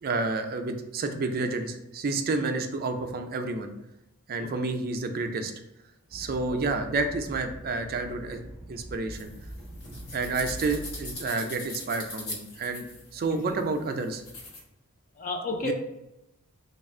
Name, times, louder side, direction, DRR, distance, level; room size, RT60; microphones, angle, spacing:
voice 1, 0.0-3.7 4.3-5.5 6.1-8.4 8.7-9.3 10.1-12.8 13.1-14.2 15.6-15.7, right 3 dB, 45° right, 6 dB, 0.4 m, -30 dB
sound 1, 6.1-11.1, equal, 55° left, 0.9 m, -43 dB
sound 2, 9.1-14.6, left 2 dB, 90° left, 1.1 m, -42 dB
voice 2, 15.1-15.7, left 2 dB, 40° left, 3 dB, 0.5 m, -32 dB
3.3 x 2.4 x 4.3 m, 0.89 s
head